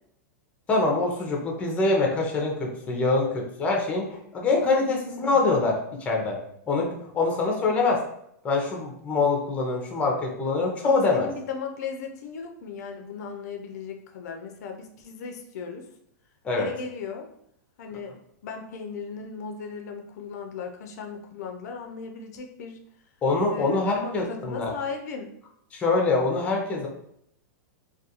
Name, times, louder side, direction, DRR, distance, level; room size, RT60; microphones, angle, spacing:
voice 1, 0.7-5.7 6.0-6.4 6.7-8.0 8.4-11.3 16.4-16.7 23.2-24.7 25.7-26.9, left 3 dB, 15° left, 0 dB, 0.5 m, -24 dB
voice 2, 10.8-15.9 16.6-17.3 17.8-18.1 18.4-22.8 23.5-25.3, left 5 dB, 65° left, 4 dB, 0.4 m, -36 dB
2.3 x 2.2 x 2.8 m, 0.73 s
hypercardioid pair, 145°, 10 cm